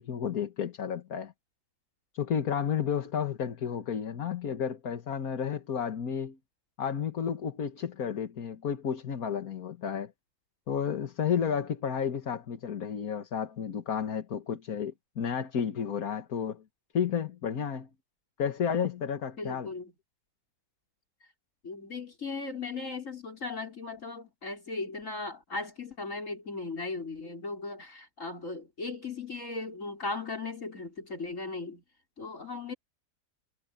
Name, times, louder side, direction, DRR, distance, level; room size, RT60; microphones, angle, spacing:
voice 1, 0.0-1.3 2.1-6.4 6.8-10.1 10.7-16.6 16.9-17.9 18.4-19.7, left 7 dB, 75° left, 1.9 m, -32 dB
voice 2, 19.4-19.9 21.6-31.8 32.2-32.7, left 3 dB, 55° left, 5.2 m, -37 dB
omnidirectional pair, 1.6 m